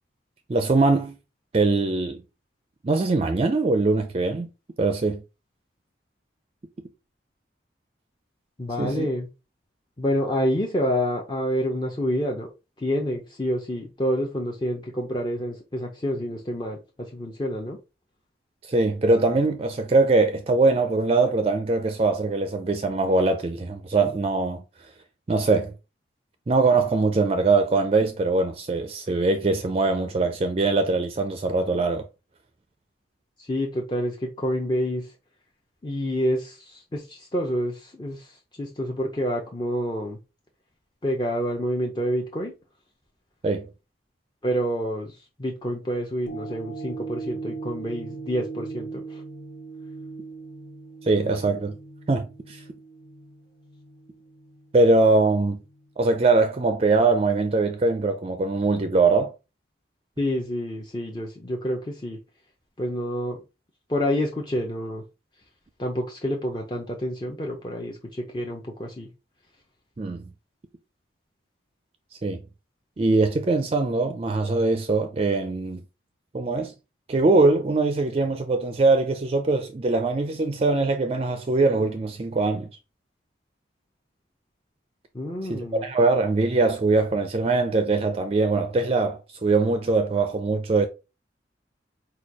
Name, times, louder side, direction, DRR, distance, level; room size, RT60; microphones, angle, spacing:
voice 1, 0.5-1.2 1.5-2.2 2.8-4.5 4.8-5.2 8.8-9.1 18.6-24.6 25.3-25.7 26.5-32.1 43.4-43.7 51.0-51.8 52.1-52.6 54.7-55.6 56.0-59.3 70.0-70.3 72.2-72.4 73.0-75.8 76.3-76.7 77.1-82.7 85.5-90.9, right 3 dB, 30° right, 0.4 m, -22 dB
voice 2, 8.6-9.3 10.0-12.5 12.8-17.8 33.4-35.1 35.8-40.2 41.0-42.5 44.4-49.2 60.2-62.2 62.8-63.4 63.9-65.0 65.8-69.1 85.1-86.1, equal, 25° left, 0.6 m, -28 dB
sound 1, 46.3-54.7 55.2-55.3, right 4 dB, 85° left, 0.8 m, -39 dB
4.2 x 2.3 x 4.7 m
head